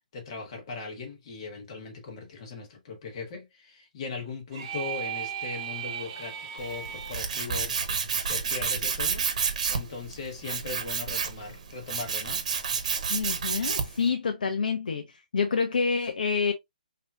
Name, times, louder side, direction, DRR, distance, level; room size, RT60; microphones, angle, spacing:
voice 1, 0.1-9.2 9.7-12.5, left 4 dB, 40° left, 1.7 m, -39 dB
sound 1, 4.5-7.3, right 9 dB, 25° right, 1.0 m, -36 dB
Tools, 6.6-14.1, right 6 dB, 50° right, 1.1 m, -30 dB
voice 2, 13.1-16.5, left 5 dB, 70° left, 0.8 m, -27 dB
5.3 x 3.0 x 2.4 m
hypercardioid pair, 160°, 5 cm